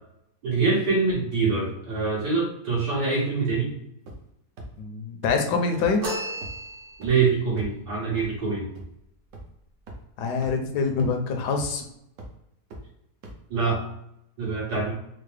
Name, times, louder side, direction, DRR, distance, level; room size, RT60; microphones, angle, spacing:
voice 1, 0.4-3.7 7.0-8.6 13.5-13.8 14.4-14.9, right 4 dB, 80° right, -6 dB, 2.2 m, -24 dB
sound 1, 4.1-4.3 4.6-4.7 5.2-5.3 5.8-5.9 6.4-6.5 7.0-7.1 7.6-7.8 8.2-8.3 8.8-8.9 9.3-9.4 9.9-10.0 10.4-10.5 11.0-11.1 11.6-11.8 12.2-12.3 12.7-12.8 13.2-13.3, right 2 dB, 65° right, 1.2 m, -39 dB
voice 2, 4.8-6.1 10.2-11.8, left 4 dB, 80° left, 4 dB, 1.2 m, -25 dB
sound 2, 6.0-7.3, equal, 45° right, 0.8 m, -33 dB
4.5 x 2.0 x 3.2 m, 0.78 s
omnidirectional pair, 1.8 m